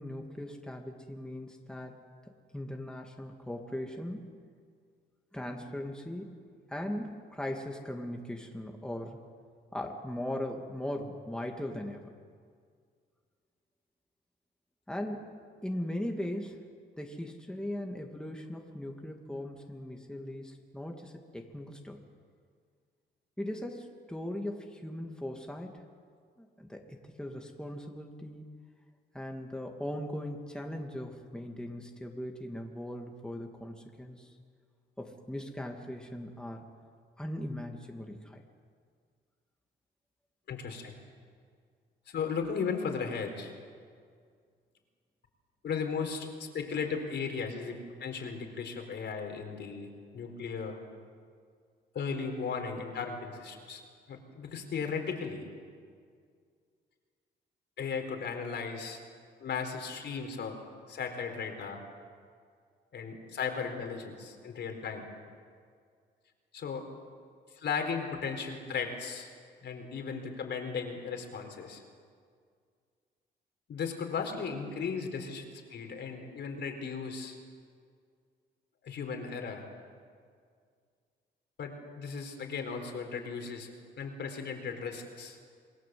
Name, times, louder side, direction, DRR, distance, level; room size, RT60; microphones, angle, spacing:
voice 1, 0.0-2.0 2.5-4.3 5.3-6.4 6.7-9.2 9.7-12.0 14.9-15.3 15.6-16.7 17.0-22.0 23.4-25.8 26.4-28.5 29.1-34.3 35.0-36.6 37.2-38.4, left 1 dB, 5° left, 2 dB, 2.6 m, -39 dB
voice 2, 40.5-40.9 42.1-43.5 45.6-50.8 51.9-53.8 54.1-55.4 57.8-59.0 59.4-60.6 60.9-61.8 62.9-65.1 66.5-66.9 67.5-69.3 69.6-71.8 73.7-77.4 78.8-79.7 81.6-83.7 84.0-85.4, left 5 dB, 60° left, 4 dB, 4.4 m, -36 dB
27.5 x 20.0 x 7.9 m, 2.1 s
cardioid pair, 90°, 20 cm